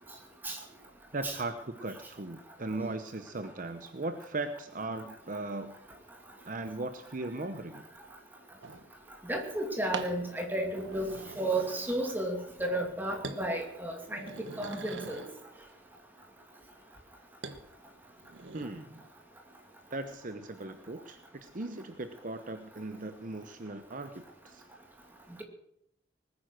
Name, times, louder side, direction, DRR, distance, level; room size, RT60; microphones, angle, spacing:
voice 1, 1.1-5.8 6.5-7.8 18.5-19.1 19.9-24.6, right 2 dB, 45° right, 8 dB, 0.9 m, -38 dB
sound 1, 8.6-8.9 9.9-10.2 10.7-12.2 12.5-12.9 13.2-13.5 13.9-15.4 17.4-17.6 18.1-18.7, right 3 dB, 75° right, 1.3 m, -43 dB
voice 2, 9.2-15.2, right 1 dB, 10° right, 2 dB, 2.5 m, -33 dB
20.0 x 9.8 x 6.2 m, 0.73 s
head